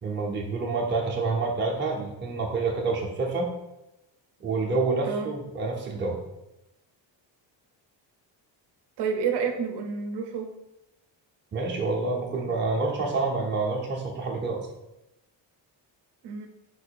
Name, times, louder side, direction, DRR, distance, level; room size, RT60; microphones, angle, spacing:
voice 1, 0.0-3.5 4.4-6.2 11.5-14.7, right 3 dB, 25° right, -1 dB, 0.6 m, -28 dB
voice 2, 9.0-10.5 16.2-16.5, right 6 dB, 65° right, 5 dB, 0.7 m, -29 dB
4.5 x 2.5 x 4.5 m, 0.93 s
cardioid pair, 145°, 45 cm